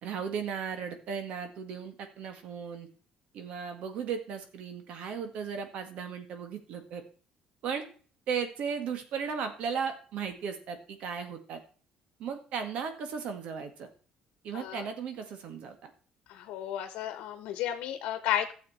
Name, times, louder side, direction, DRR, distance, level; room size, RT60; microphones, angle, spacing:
voice 1, 0.0-2.9 3.3-7.0 7.6-7.8 8.3-11.6 12.2-13.9 14.4-15.9, right 6 dB, 65° right, 7 dB, 1.9 m, -36 dB
voice 2, 14.5-14.8 16.3-18.5, left 11 dB, 85° left, 8 dB, 1.0 m, -33 dB
12.5 x 7.3 x 4.3 m, 0.41 s
cardioid pair, 135°, 2 cm